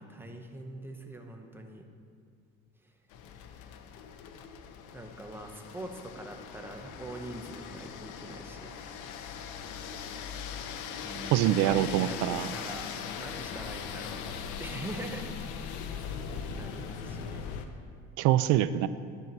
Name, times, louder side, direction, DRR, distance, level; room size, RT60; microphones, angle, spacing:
voice 1, 0.0-1.8 2.8-2.9 4.9-8.9 11.0-14.2 14.6-15.3 15.8-17.7, right 1 dB, 5° right, 3 dB, 0.8 m, -43 dB
sound 1, 3.1-17.7, left 7 dB, 70° left, 0.8 m, -40 dB
voice 2, 11.3-12.5 18.2-18.9, right 13 dB, 70° right, 14 dB, 0.5 m, -24 dB
12.0 x 4.6 x 6.7 m, 2.3 s
cardioid pair, 130°, 31 cm